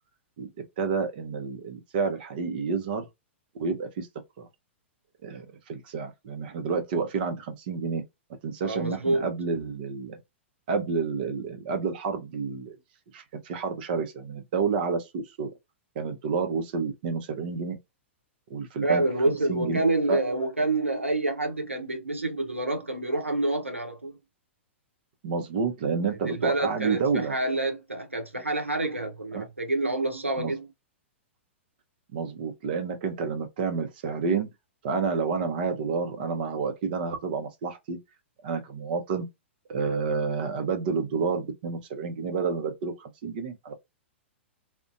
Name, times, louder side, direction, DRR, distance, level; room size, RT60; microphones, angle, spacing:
voice 1, 0.8-3.1 3.6-4.1 4.4-4.5 5.2-8.0 8.4-10.2 10.7-12.8 13.1-15.5 16.0-17.7 18.5-20.2 25.2-27.3 29.3-29.4 30.4-30.5 32.1-34.5 34.8-38.0 38.4-39.3 39.7-43.7, right 5 dB, 50° right, 0.6 m, -29 dB
voice 2, 8.6-9.3 18.8-24.2 26.3-30.6, right 2 dB, 90° right, 0.7 m, -27 dB
2.5 x 2.1 x 2.5 m
figure-of-eight pair, 105°, 7 cm